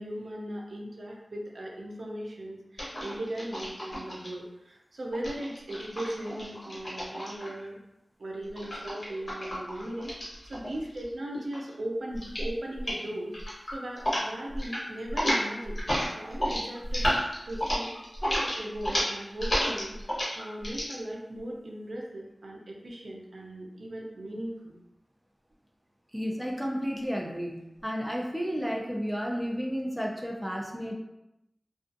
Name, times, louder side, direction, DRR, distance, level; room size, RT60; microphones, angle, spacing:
voice 1, 0.0-7.8 8.2-15.8 16.2-17.1 17.5-17.9 18.2-24.8, right 1 dB, 85° right, -1 dB, 0.5 m, -38 dB
sound 1, 2.8-4.3 5.1-7.6 8.6-11.1 11.3-11.7 12.1-12.5 12.8-13.0 13.3-14.2 14.5-14.8 15.1-20.9, equal, 50° left, 1.1 m, -31 dB
voice 2, 26.1-30.9, equal, 5° right, -1 dB, 0.4 m, -32 dB
2.4 x 2.3 x 2.5 m, 0.91 s
wide cardioid pair, 50°, 0 cm